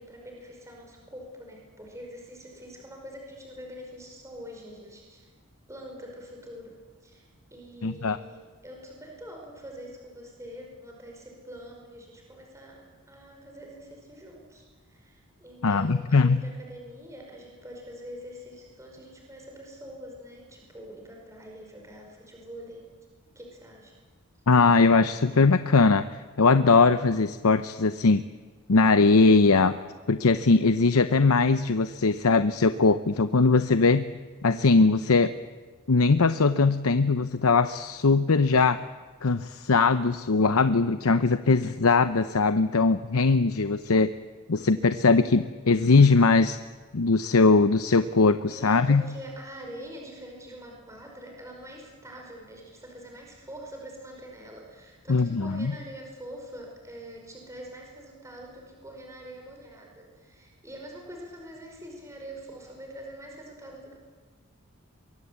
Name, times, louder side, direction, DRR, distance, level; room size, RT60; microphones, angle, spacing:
voice 1, 0.0-5.3 5.7-6.8 7.0-22.9 23.4-23.9 44.5-45.0 48.5-64.0, equal, 15° right, 0 dB, 5.2 m, -44 dB
voice 2, 7.8-8.2 15.6-16.4 24.5-28.2 28.7-29.8 30.1-34.1 34.4-35.3 35.9-38.8 39.2-44.1 44.5-46.6 46.9-49.0 55.1-55.7, left 4 dB, 85° left, 11 dB, 0.8 m, -21 dB
23.5 x 23.0 x 8.3 m, 1.4 s
head